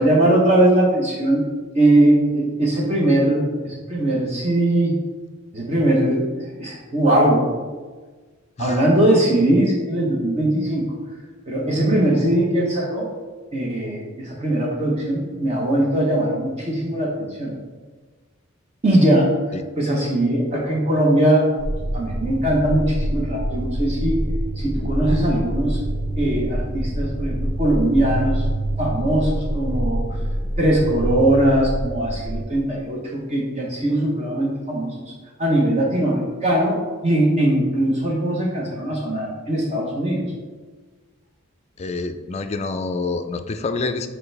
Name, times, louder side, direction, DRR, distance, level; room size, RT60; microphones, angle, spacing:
voice 1, 0.0-1.4 1.7-4.9 5.5-7.5 8.6-10.8 11.5-13.1 13.5-17.1 17.4-17.5 18.8-19.3 19.8-21.5 21.9-24.2 24.6-25.8 26.2-28.4 28.8-30.0 30.6-35.1 35.4-40.2, right 1 dB, 35° right, -2 dB, 1.0 m, -20 dB
sound 1, 21.6-32.4, right 1 dB, 70° right, 1.4 m, -26 dB
voice 2, 41.8-44.1, left 3 dB, 30° left, 8 dB, 0.4 m, -27 dB
6.9 x 4.5 x 3.3 m, 1.4 s
head